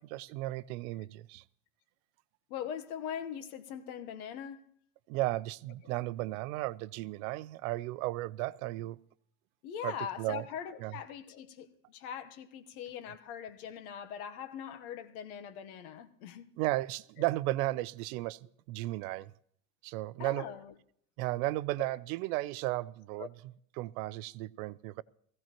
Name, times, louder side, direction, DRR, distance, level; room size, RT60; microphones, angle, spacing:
voice 1, 0.0-1.4 5.1-9.0 9.8-10.5 10.8-11.0 16.6-18.4 18.7-19.3 19.8-20.5 21.2-23.3 23.8-25.0, right 18 dB, 80° right, 0.6 m, -34 dB
voice 2, 2.5-4.6 9.6-16.5 17.2-17.3 20.2-20.7 23.2-23.3, left 8 dB, 90° left, 1.3 m, -41 dB
16.5 x 15.5 x 3.0 m
cardioid pair, 145°, 43 cm